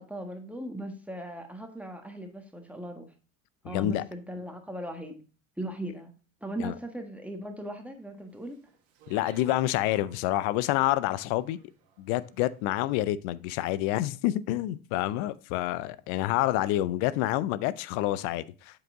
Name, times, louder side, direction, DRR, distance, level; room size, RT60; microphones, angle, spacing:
voice 1, 0.0-3.1 3.6-5.2 5.6-6.1 6.4-8.6, right 1 dB, 5° right, 1.4 m, -38 dB
voice 2, 3.6-4.0 6.6-6.7 9.1-11.6 12.0-18.8, left 15 dB, 65° left, 0.6 m, -28 dB
Speech, 8.3-12.6, right 7 dB, 70° right, 1.6 m, -55 dB
7.7 x 4.9 x 3.6 m
hypercardioid pair, 75°, 41 cm